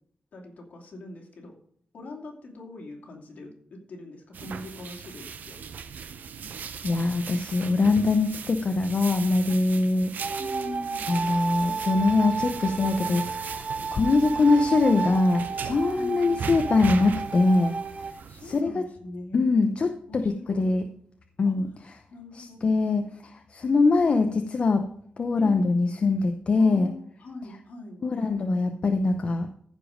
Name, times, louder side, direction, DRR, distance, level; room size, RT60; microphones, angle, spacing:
voice 1, 0.3-1.6 1.9-5.6 10.4-11.1 14.0-14.5 16.0-16.6 18.3-19.5 20.1-20.7 21.4-21.5 22.1-22.6 25.4-25.7 26.6-28.0, left 2 dB, 60° left, 0 dB, 2.8 m, -42 dB
sound 1, 4.3-18.6, right 6 dB, 85° right, 0.7 m, -39 dB
voice 2, 6.8-10.1 11.1-17.7 18.4-18.8 19.3-20.8 21.4-21.7 22.3-24.8 25.2-26.9 28.0-29.5, left 3 dB, 40° left, 5 dB, 0.7 m, -23 dB
sound 2, 10.2-18.1, right 5 dB, 50° right, 0.8 m, -32 dB
14.5 x 5.1 x 5.0 m, 0.63 s
wide cardioid pair, 165°, 3 cm